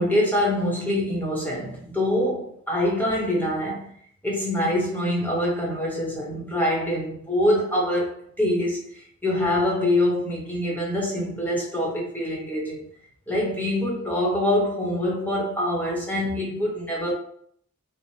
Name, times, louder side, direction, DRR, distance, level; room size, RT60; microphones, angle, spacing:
voice 1, 0.0-3.9 4.2-12.8 13.3-17.1, left 1 dB, 10° left, 1.0 m, -25 dB
4.1 x 2.1 x 3.2 m
head